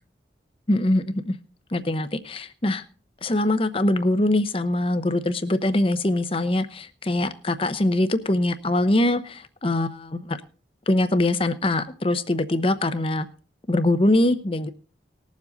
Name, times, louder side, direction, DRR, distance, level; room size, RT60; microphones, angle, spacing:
voice 1, 0.7-1.4 1.7-2.8 3.2-10.4 10.9-13.3 13.7-14.7, left 1 dB, 30° left, 12 dB, 0.8 m, -23 dB
19.5 x 7.4 x 3.9 m, 0.38 s
head